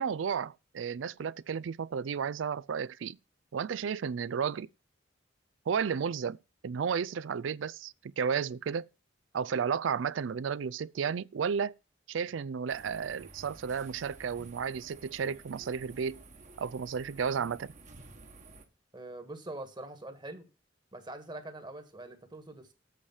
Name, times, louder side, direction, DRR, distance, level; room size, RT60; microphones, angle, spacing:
voice 1, 0.0-3.2 3.5-4.7 5.7-8.9 9.3-11.7 12.1-16.2 16.6-17.7, right 6 dB, 85° right, 0.4 m, -33 dB
sound 1, 12.7-18.7, right 3 dB, 40° right, 1.4 m, -52 dB
voice 2, 18.9-20.5 20.9-22.7, right 2 dB, 25° right, 1.6 m, -44 dB
8.3 x 4.9 x 7.1 m
head